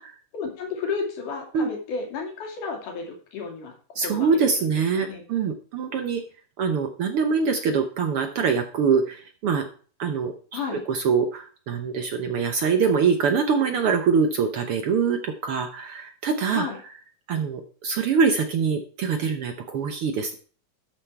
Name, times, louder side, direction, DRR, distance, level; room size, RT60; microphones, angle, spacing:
voice 1, 0.3-3.7 4.0-4.3 4.6-4.7 5.0-5.2 10.5-10.8 16.5-16.8, left 5 dB, 75° left, 2 dB, 4.0 m, -32 dB
voice 2, 3.9-6.2 6.6-9.6 10.0-10.3 10.9-16.7 17.3-20.4, right 5 dB, 70° right, 6 dB, 1.4 m, -24 dB
12.5 x 5.7 x 4.5 m, 0.41 s
omnidirectional pair, 3.7 m